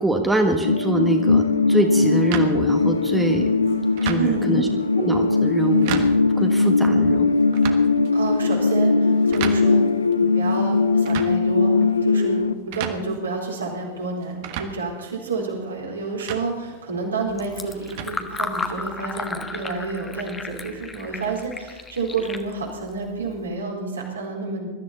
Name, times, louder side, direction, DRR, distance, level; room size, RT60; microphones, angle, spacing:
voice 1, 0.0-1.4 1.7-3.5 4.0-4.7 5.0-6.1 6.3-7.3, right 2 dB, 5° right, 4 dB, 1.4 m, -23 dB
sound 1, 0.6-12.5, left 3 dB, 75° left, 0.6 m, -20 dB
sound 2, 2.3-19.0, right 9 dB, 50° right, 1.3 m, -37 dB
voice 2, 4.2-4.7 8.1-9.9 10.2-11.7 12.0-24.7, right 3 dB, 75° right, -2 dB, 4.1 m, -29 dB
Fill (with liquid), 17.3-23.5, left 3 dB, 15° left, 1.2 m, -34 dB
21.5 x 13.0 x 4.2 m, 1.2 s
figure-of-eight pair, 90°, 0 cm